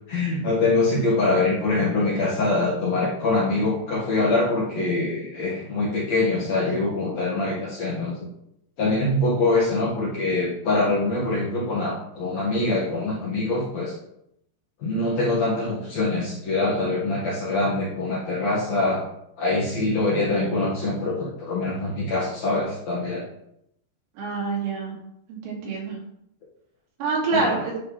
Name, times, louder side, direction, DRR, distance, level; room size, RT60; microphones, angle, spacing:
voice 1, 0.1-8.3 8.8-13.9 14.8-19.0 19.4-23.2 27.3-27.5, left 2 dB, 55° left, -5 dB, 2.0 m, -24 dB
voice 2, 24.2-25.0 25.3-26.0 27.0-27.7, right 3 dB, 90° right, -3 dB, 4.3 m, -26 dB
10.0 x 5.8 x 3.1 m, 0.76 s
omnidirectional pair, 4.8 m